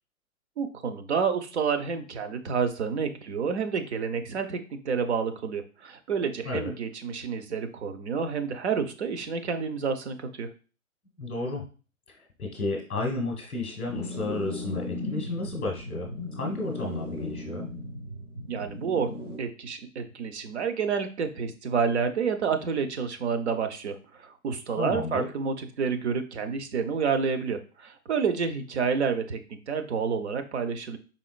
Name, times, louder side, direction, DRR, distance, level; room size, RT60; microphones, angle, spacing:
voice 1, 0.6-10.5 18.5-19.1 19.4-31.0, right 6 dB, 50° right, 8 dB, 0.6 m, -29 dB
voice 2, 11.2-11.6 12.4-17.6 24.8-25.3, left 2 dB, ahead, -15 dB, 0.4 m, -32 dB
sound 1, 13.8-19.4, left 1 dB, 90° right, 1.3 m, -37 dB
4.2 x 3.6 x 2.4 m, 0.35 s
figure-of-eight pair, 130°, 43 cm